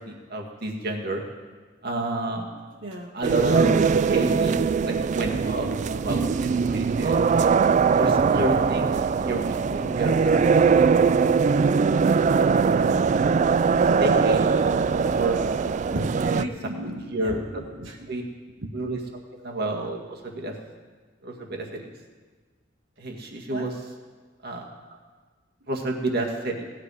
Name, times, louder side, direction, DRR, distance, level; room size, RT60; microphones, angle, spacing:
voice 1, 0.1-1.2 1.8-2.5 3.1-3.7 4.1-4.6 4.9-7.2 7.9-9.0 9.2-11.1 13.4-14.4 14.7-15.4 16.2-16.4 17.1-17.6 18.1-18.2 18.7-19.0 19.3-20.5 21.2-21.9 23.0-23.7 24.4-24.7 25.7-26.7, right 2 dB, 55° right, 1 dB, 1.9 m, -29 dB
voice 2, 2.8-3.1 12.7-13.0 15.8-18.2 18.6-18.7 23.5-23.7 25.6-25.7, right 1 dB, 85° right, 0 dB, 1.3 m, -36 dB
sound 1, 3.2-16.4, right 5 dB, 40° right, 0.3 m, -21 dB
18.0 x 11.0 x 4.9 m, 1.4 s
head